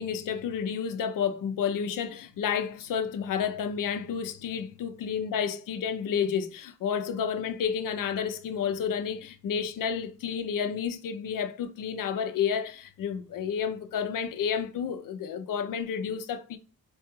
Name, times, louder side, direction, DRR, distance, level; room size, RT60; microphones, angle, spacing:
voice 1, 0.0-16.6, left 7 dB, 80° left, 0.6 m, -30 dB
4.4 x 2.2 x 2.9 m
wide cardioid pair, 135°, 32 cm